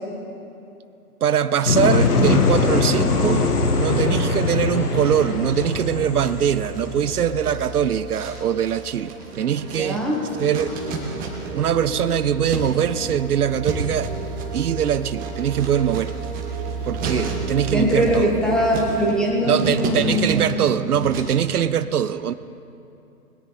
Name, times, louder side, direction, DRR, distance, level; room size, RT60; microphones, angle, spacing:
sound 1, 1.2-19.1, right 4 dB, 40° right, 2.1 m, -35 dB
voice 1, 1.2-3.5 3.8-10.1 10.4-10.7 11.5-14.1 14.5-16.1 16.8-18.3 19.4-22.3, right 9 dB, 75° right, 14 dB, 0.6 m, -22 dB
sound 2, 1.7-7.5, left 3 dB, 80° left, 1.5 m, -21 dB
sound 3, 5.0-5.8 6.2-11.7 11.9-21.5, right 3 dB, 20° right, 1.6 m, -33 dB
voice 2, 9.8-10.2 17.7-20.9, equal, ahead, -4 dB, 1.7 m, -22 dB
21.0 x 10.0 x 4.2 m, 2.8 s
figure-of-eight pair, 135°, 45 cm